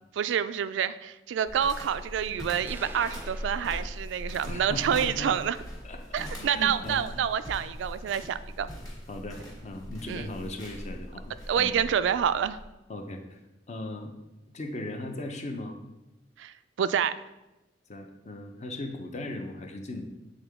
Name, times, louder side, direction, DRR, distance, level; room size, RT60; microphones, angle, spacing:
voice 1, 0.2-5.6 6.1-8.7 10.1-10.3 11.5-12.6 16.4-17.1, right 8 dB, 85° right, 13 dB, 0.3 m, -28 dB
sound 1, 1.5-12.7, equal, 20° left, 1.6 m, -41 dB
sound 2, 2.7-4.6, right 2 dB, 10° right, 0.4 m, -47 dB
voice 2, 4.4-5.4 5.8-6.0 6.4-7.1 9.1-11.8 12.9-13.4 13.7-14.1 14.5-15.8 17.9-20.0, left 2 dB, 40° left, 4 dB, 0.7 m, -38 dB
8.0 x 3.7 x 3.5 m, 0.98 s
head